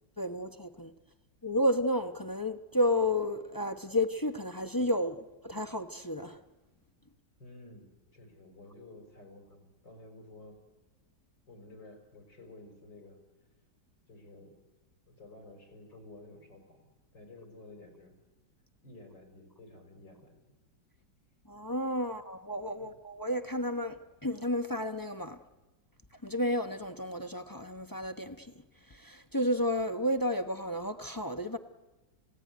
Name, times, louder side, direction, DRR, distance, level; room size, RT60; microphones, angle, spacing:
voice 1, 0.2-0.9 1.4-6.4 21.4-25.4 26.1-28.5 28.8-31.6, left 1 dB, 20° left, 0.6 m, -32 dB
voice 2, 7.4-10.6 11.5-13.2 14.1-14.6 15.1-18.2 18.8-20.4 22.8-22.9, left 2 dB, 80° left, 5.9 m, -52 dB
29.5 x 17.0 x 9.4 m
omnidirectional pair, 1.9 m